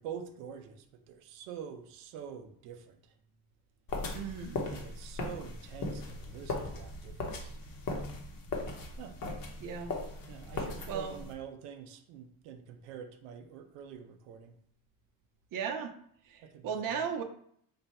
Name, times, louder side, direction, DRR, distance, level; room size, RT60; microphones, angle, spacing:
voice 1, 0.0-3.1 4.7-7.6 9.0-9.2 10.3-14.5 16.4-17.0, right 8 dB, 90° right, 6 dB, 0.6 m, -46 dB
sound 1, 3.9-11.3, left 2 dB, 45° left, 0.9 m, -38 dB
voice 2, 4.1-4.7 9.6-10.0 10.9-11.1 15.5-15.9 16.3-17.2, right 7 dB, 45° right, 6 dB, 0.6 m, -36 dB
3.3 x 2.3 x 4.1 m, 0.67 s
supercardioid pair, 85°, 46 cm